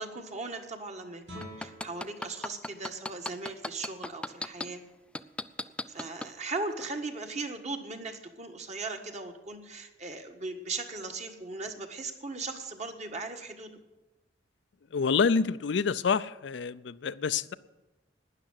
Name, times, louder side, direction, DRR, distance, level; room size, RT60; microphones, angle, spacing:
voice 1, 0.0-4.8 5.9-13.7, right 3 dB, 40° right, 1.5 m, -38 dB
Guitar, 1.2-6.8, equal, 90° right, 4.2 m, -53 dB
sound 1, 1.4-4.7 5.1-6.3 6.8-6.9, left 2 dB, 5° left, 0.4 m, -35 dB
voice 2, 14.9-17.5, left 5 dB, 75° left, 0.5 m, -27 dB
12.5 x 9.8 x 8.2 m
head